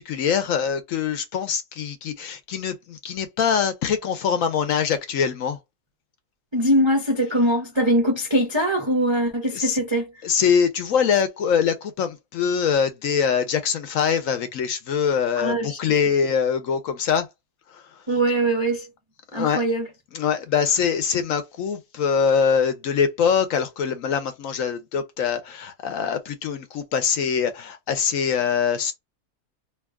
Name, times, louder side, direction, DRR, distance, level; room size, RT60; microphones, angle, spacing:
voice 1, 0.0-5.6 9.5-9.8 10.2-17.3 17.7-17.8 19.3-19.6 20.1-28.9, left 7 dB, 65° left, 1.0 m, -23 dB
voice 2, 6.5-10.1 15.4-15.8 18.1-18.9 19.3-19.9, right 1 dB, 40° right, 0.3 m, -22 dB
2.9 x 2.3 x 3.4 m
omnidirectional pair, 1.6 m